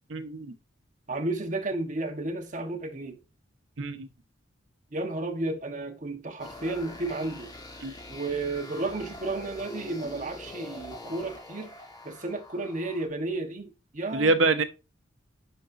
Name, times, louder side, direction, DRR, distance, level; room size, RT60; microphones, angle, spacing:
voice 1, 0.1-0.5 3.8-4.1 7.8-7.9 14.1-14.6, right 3 dB, 85° right, 0.8 m, -25 dB
voice 2, 1.1-3.2 4.9-7.5 8.1-11.7 12.0-14.3, right 2 dB, 40° right, 1.1 m, -32 dB
sound 1, 6.4-13.1, left 2 dB, 20° left, 1.5 m, -44 dB
10.5 x 4.0 x 2.5 m
head